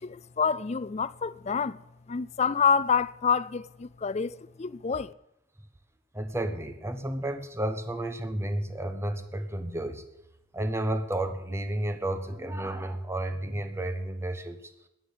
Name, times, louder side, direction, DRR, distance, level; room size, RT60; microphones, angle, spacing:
voice 1, 0.0-1.8 2.1-5.1, left 6 dB, 35° left, 0.4 m, -27 dB
voice 2, 6.1-10.1 10.5-14.6, right 1 dB, 15° right, 1.3 m, -32 dB
12.5 x 10.0 x 8.5 m
head